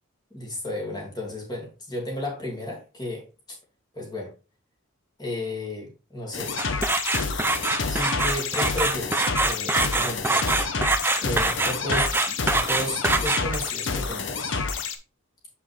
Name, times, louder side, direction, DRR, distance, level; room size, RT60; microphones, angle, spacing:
voice 1, 0.3-3.6 3.9-4.3 5.2-6.6 7.9-10.4 11.2-14.6, left 1 dB, 20° left, -2 dB, 2.3 m, -33 dB
sound 1, 6.3-14.9, left 4 dB, 60° left, 0.9 m, -29 dB
sound 2, 6.6-13.7, right 3 dB, 10° right, 0.4 m, -24 dB
7.0 x 5.6 x 3.3 m, 0.32 s
head